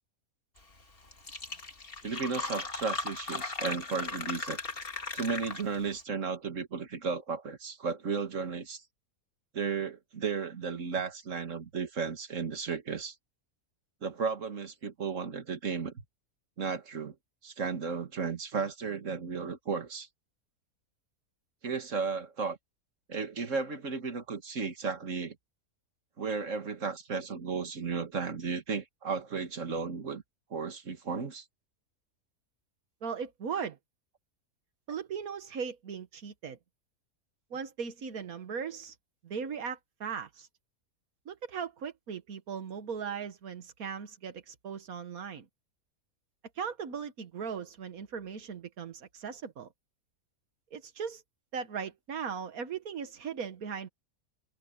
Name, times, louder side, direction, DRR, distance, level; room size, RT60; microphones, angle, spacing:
Fill (with liquid), 0.8-0.9 1.1-5.9, left 3 dB, 40° left, 2.5 m, -37 dB
voice 1, 2.0-4.6 5.1-8.8 9.5-13.1 14.0-16.0 16.6-17.1 17.4-20.1 21.6-22.6 23.1-25.4 26.2-30.2 30.5-31.4, right 5 dB, 60° right, 2.2 m, -34 dB
voice 2, 33.0-33.8 34.9-36.6 37.5-39.0 39.2-40.5 41.3-45.5 46.6-49.7 50.7-51.2 51.5-53.9, right 6 dB, 90° right, 1.8 m, -38 dB
open air
omnidirectional pair, 1.5 m